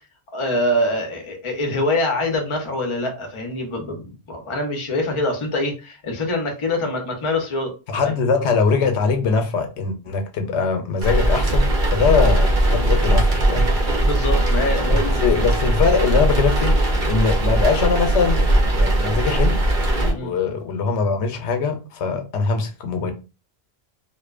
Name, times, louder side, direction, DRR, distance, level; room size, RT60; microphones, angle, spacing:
voice 1, 0.3-7.7 14.0-15.2 20.1-20.3, left 1 dB, 35° left, 0.5 m, -24 dB
voice 2, 7.9-13.7 15.2-18.4 18.7-19.6 20.0-23.1, left 5 dB, 85° left, 0.9 m, -22 dB
sound 1, 11.0-20.1, right 1 dB, 55° right, 0.7 m, -19 dB
2.6 x 2.1 x 2.3 m
omnidirectional pair, 1.1 m